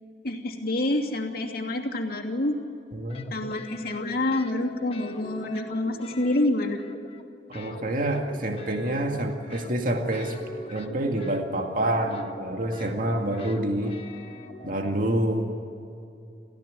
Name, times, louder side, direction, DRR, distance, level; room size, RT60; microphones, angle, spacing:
voice 1, 0.2-2.6 3.3-6.8, left 1 dB, 55° left, 1 dB, 2.8 m, -27 dB
voice 2, 2.9-3.2 7.5-10.4 10.7-14.0 14.6-15.5, right 1 dB, 50° right, 3 dB, 2.1 m, -27 dB
sound 1, 3.1-4.6 4.9-7.3 7.5-15.2, left 1 dB, 35° left, 1.6 m, -44 dB
29.5 x 15.5 x 9.5 m, 2.6 s
head